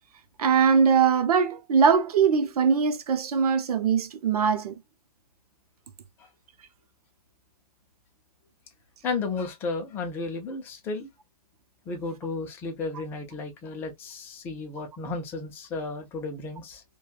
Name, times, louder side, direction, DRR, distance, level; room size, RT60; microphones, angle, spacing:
voice 1, 0.4-4.7, right 6 dB, 75° right, 0.7 m, -21 dB
voice 2, 9.0-11.1 11.9-16.8, left 3 dB, 10° left, 0.4 m, -33 dB
3.1 x 2.2 x 2.3 m
hypercardioid pair, 160°, 20 cm